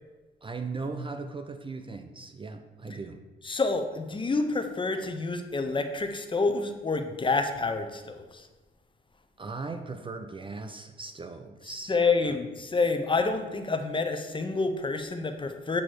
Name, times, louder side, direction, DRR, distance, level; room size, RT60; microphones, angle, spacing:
voice 1, 0.4-3.2 9.4-12.4, right 3 dB, 25° right, 7 dB, 0.5 m, -38 dB
voice 2, 3.4-8.5 11.9-15.8, left 3 dB, 25° left, 6 dB, 0.8 m, -28 dB
8.3 x 3.0 x 6.2 m, 1.2 s
cardioid pair, 90°, 20 cm